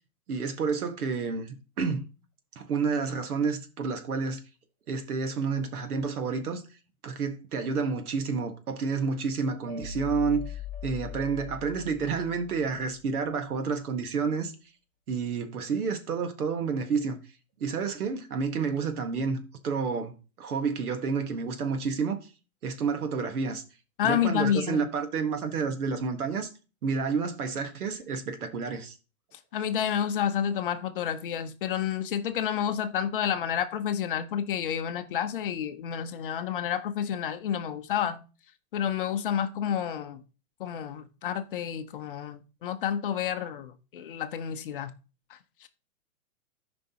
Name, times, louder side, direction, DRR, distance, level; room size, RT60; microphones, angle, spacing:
voice 1, 0.3-2.1 2.5-4.4 4.9-6.6 7.0-14.5 15.1-17.2 17.6-20.1 20.4-22.2 22.6-23.6 24.0-26.5 26.8-29.0, right 5 dB, 80° right, 1.7 m, -30 dB
sound 1, 9.7-12.9, left 9 dB, 25° right, 1.8 m, -40 dB
voice 2, 24.0-24.9 29.5-38.2 38.7-40.2 40.6-44.9 45.3-45.7, left 9 dB, 40° left, 0.6 m, -30 dB
13.0 x 5.2 x 2.9 m
hypercardioid pair, 160°, 44 cm